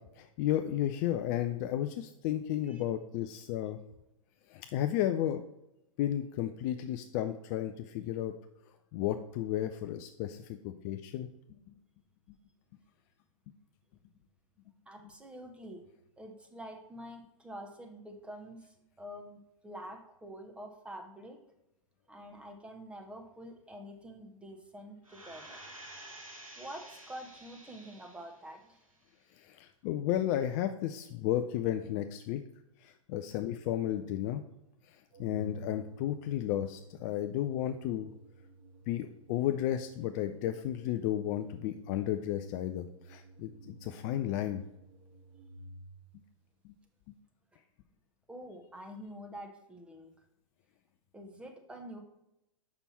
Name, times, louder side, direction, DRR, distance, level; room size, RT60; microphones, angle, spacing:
voice 1, 0.0-3.8 4.5-5.4 6.0-8.3 8.9-11.3 29.4-32.4 32.8-34.4 35.2-38.1 38.9-44.6, left 12 dB, 35° left, 8 dB, 0.4 m, -33 dB
voice 2, 14.9-15.8 16.2-18.6 19.0-21.4 22.1-25.6 26.6-28.8 48.3-50.1 51.1-52.0, equal, 5° right, 4 dB, 1.0 m, -47 dB
sound 1, 25.0-28.4 28.9-29.0, right 1 dB, 85° right, 1.7 m, -50 dB
Organ, 35.1-46.1, right 1 dB, 30° right, 1.7 m, -52 dB
6.9 x 5.8 x 4.1 m, 0.90 s
figure-of-eight pair, 105°, 17 cm